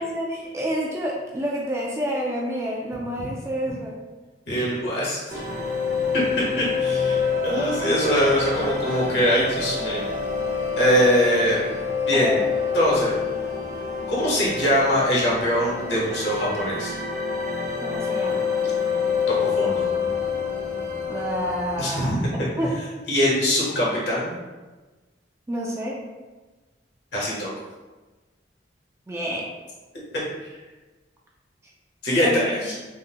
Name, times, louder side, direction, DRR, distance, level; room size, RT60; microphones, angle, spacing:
voice 1, 0.0-4.0 12.1-12.5 17.8-18.5 21.1-22.2 22.6-22.7 25.5-26.0 29.1-29.5 32.2-32.5, equal, 15° right, -2 dB, 0.3 m, -28 dB
voice 2, 4.5-5.4 6.6-10.0 10.8-11.6 12.1-12.4 12.7-13.1 14.1-16.9 19.3-19.8 21.8-22.3 23.1-24.3 27.1-27.5 32.0-32.7, equal, 65° left, -6 dB, 1.0 m, -22 dB
sound 1, 5.3-21.8, left 5 dB, 55° right, 0.9 m, -27 dB
3.6 x 2.0 x 2.8 m, 1.2 s
head